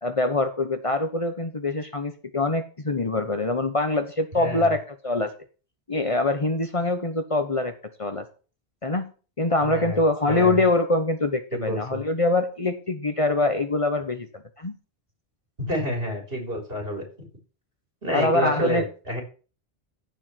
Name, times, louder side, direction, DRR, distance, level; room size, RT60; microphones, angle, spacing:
voice 1, 0.0-5.3 5.9-7.7 8.0-8.2 8.8-9.1 9.4-14.7 18.1-18.9, left 2 dB, 35° left, 8 dB, 1.0 m, -24 dB
voice 2, 4.3-4.7 9.6-10.0 10.3-10.6 11.5-12.0 15.6-17.0 18.0-19.2, equal, 70° right, 1 dB, 4.2 m, -29 dB
15.0 x 5.1 x 5.8 m, 0.36 s
omnidirectional pair, 1.0 m